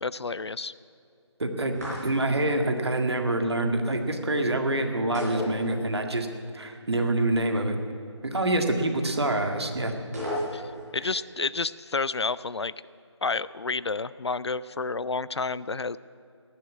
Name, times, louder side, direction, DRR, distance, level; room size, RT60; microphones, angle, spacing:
voice 1, 0.0-0.7 10.5-10.6 10.9-12.7 13.2-16.0, left 4 dB, 65° left, 19 dB, 0.4 m, -30 dB
voice 2, 1.4-6.3 6.5-7.8 8.2-9.9, right 1 dB, 60° right, 5 dB, 1.9 m, -26 dB
sound 1, 1.7-2.4 5.1-6.2 6.5-6.6 10.1-10.9, left 1 dB, 35° right, 5.2 m, -34 dB
18.0 x 7.4 x 9.5 m, 2.5 s
figure-of-eight pair, 170°, 15 cm